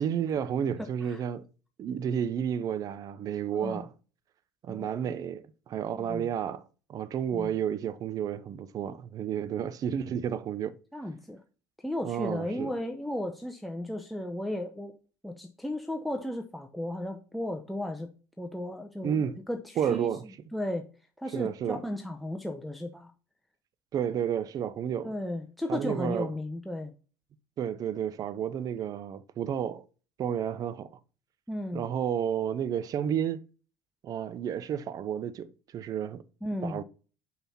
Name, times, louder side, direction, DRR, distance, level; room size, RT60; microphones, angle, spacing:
voice 1, 0.0-1.4 1.8-3.9 4.6-6.6 6.9-10.8 12.0-12.7 19.0-19.4 19.8-20.3 21.3-21.8 23.9-25.1 25.7-26.3 27.6-29.8 30.2-30.9 31.7-33.4 34.0-35.5 35.7-36.2 36.6-36.8, right 8 dB, 45° right, 0.6 m, -31 dB
voice 2, 0.8-1.2 3.5-3.8 4.7-5.0 6.0-6.3 7.3-7.5 10.9-11.4 11.8-14.9 15.2-18.1 18.4-20.1 20.5-20.9 21.2-23.1 25.0-26.9 31.5-31.9 36.4-36.8, left 1 dB, ahead, 0.7 m, -35 dB
5.8 x 5.6 x 4.2 m
hypercardioid pair, 70°, 9 cm